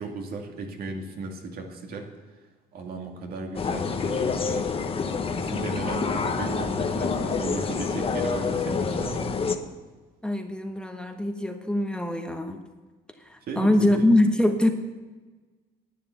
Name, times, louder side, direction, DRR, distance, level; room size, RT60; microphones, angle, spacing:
voice 1, 0.0-2.4 2.7-4.9 5.3-9.3 13.5-14.1, right 3 dB, 65° right, 2 dB, 2.2 m, -35 dB
sound 1, 3.5-9.5, left 5 dB, 35° left, 1.1 m, -27 dB
voice 2, 10.2-12.6 13.2-14.7, left 1 dB, 5° left, 5 dB, 1.1 m, -23 dB
11.0 x 9.4 x 7.0 m, 1.3 s
cardioid pair, 110°, 17 cm